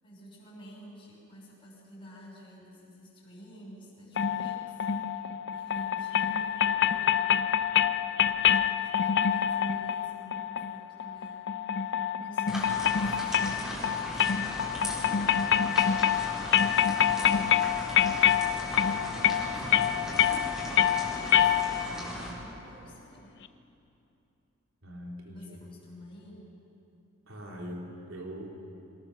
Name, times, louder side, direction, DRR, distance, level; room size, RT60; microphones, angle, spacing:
voice 1, 0.0-7.5 8.0-15.0 15.5-18.8 19.5-20.2 20.5-23.5 25.3-26.5, equal, 25° left, -8 dB, 6.0 m, -50 dB
sound 1, 4.2-22.0, left 9 dB, 60° left, 0.6 m, -26 dB
sound 2, 12.5-22.3, equal, 5° right, 4.6 m, -37 dB
voice 2, 24.8-25.6 27.3-28.5, equal, 75° right, -2 dB, 3.8 m, -41 dB
24.0 x 19.0 x 6.9 m, 2.9 s
head